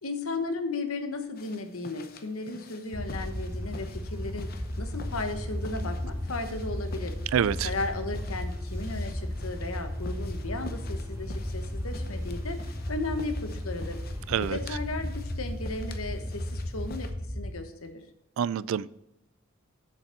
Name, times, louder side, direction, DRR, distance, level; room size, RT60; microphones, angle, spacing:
voice 1, 0.0-4.5 4.8-7.1 7.6-12.6 12.9-14.0 14.4-17.1 17.3-18.0, left 3 dB, 80° left, 7 dB, 1.1 m, -35 dB
sound 1, 1.3-17.1, left 3 dB, 45° left, 0.8 m, -49 dB
sound 2, 2.9-17.5, left 1 dB, 10° left, 0.6 m, -34 dB
sound 3, 2.9-14.8, equal, 15° right, 1.1 m, -54 dB
voice 2, 7.3-7.7 14.3-14.6 18.4-18.9, right 8 dB, 70° right, 20 dB, 0.3 m, -26 dB
7.7 x 7.4 x 4.5 m, 0.88 s
head